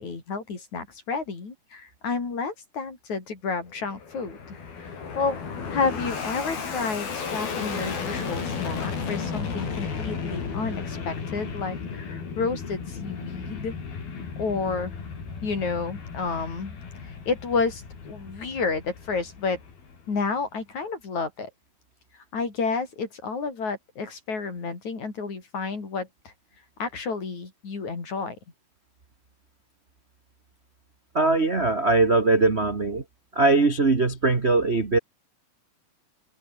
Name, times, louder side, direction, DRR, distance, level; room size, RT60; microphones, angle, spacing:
voice 1, 0.0-5.4 5.7-13.7 14.4-15.0 15.4-16.8 17.0-19.6 20.1-21.5 22.3-26.3 26.8-28.4, left 4 dB, 50° left, 6.3 m, -30 dB
Fixed-wing aircraft airplane, 3.7-20.3, left 5 dB, 80° left, 7.1 m, -34 dB
voice 2, 31.1-33.0 33.3-35.0, right 3 dB, 35° right, 1.0 m, -21 dB
open air
omnidirectional pair, 4.2 m